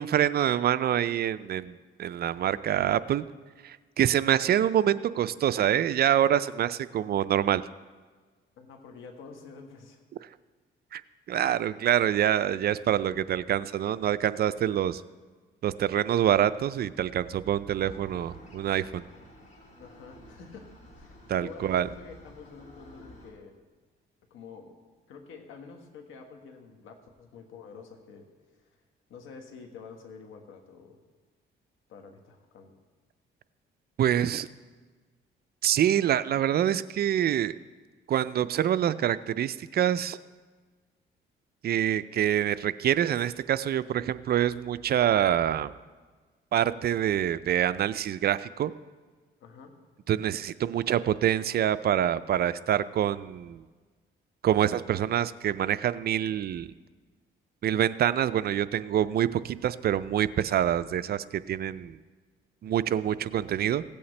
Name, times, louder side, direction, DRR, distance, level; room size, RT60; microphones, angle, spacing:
voice 1, 0.0-3.2 3.6-7.6 10.9-11.0 11.3-15.0 15.6-19.0 21.3-21.9 34.0-34.5 35.6-37.5 38.1-40.2 41.6-45.7 46.5-48.7 50.1-53.6 54.4-56.7 57.6-62.0 62.6-63.8, right 10 dB, 50° right, 15 dB, 0.4 m, -26 dB
voice 2, 8.6-10.0 19.8-23.5 24.3-24.7 25.1-28.3 28.6-28.8 29.1-31.0 31.9-32.7 49.4-49.7, left 5 dB, 85° left, 3 dB, 1.5 m, -48 dB
sound 1, 17.8-23.3, equal, 35° left, 2.8 m, -51 dB
16.5 x 8.5 x 3.3 m, 1.4 s
cardioid pair, 90°, 20 cm